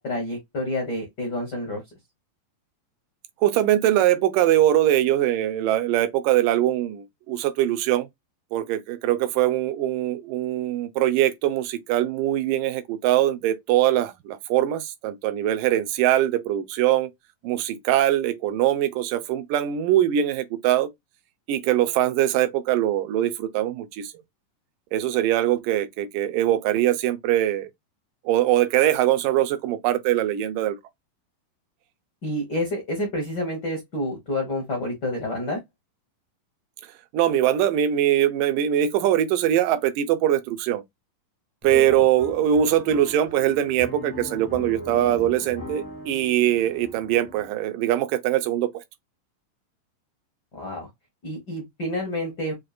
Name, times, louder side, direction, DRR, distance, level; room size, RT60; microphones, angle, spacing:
voice 1, 0.0-1.8 32.2-35.6 41.9-42.0 50.5-50.9 51.2-52.5, left 1 dB, 75° left, 0.9 m, -29 dB
voice 2, 3.4-8.1 8.5-17.1 17.4-20.9 21.5-24.1 24.9-27.7 28.3-30.8 37.1-40.8 41.6-48.7, right 12 dB, 80° right, 2.1 m, -22 dB
sound 1, 41.6-47.5, left 1 dB, 25° right, 0.5 m, -38 dB
6.3 x 2.5 x 2.4 m
omnidirectional pair, 4.1 m